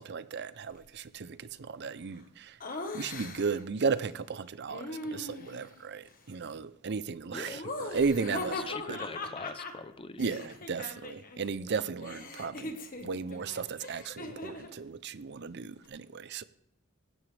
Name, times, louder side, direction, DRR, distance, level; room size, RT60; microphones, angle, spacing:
voice 1, 0.0-2.6 2.9-9.0 10.2-16.4, right 5 dB, 55° right, 0.6 m, -35 dB
Laughter, 2.6-3.6 4.7-5.7 7.5-11.4 11.7-14.8, left 2 dB, 45° left, 1.4 m, -40 dB
voice 2, 7.3-7.7 8.5-10.4, left 4 dB, 25° left, 0.6 m, -42 dB
16.5 x 11.0 x 3.4 m
head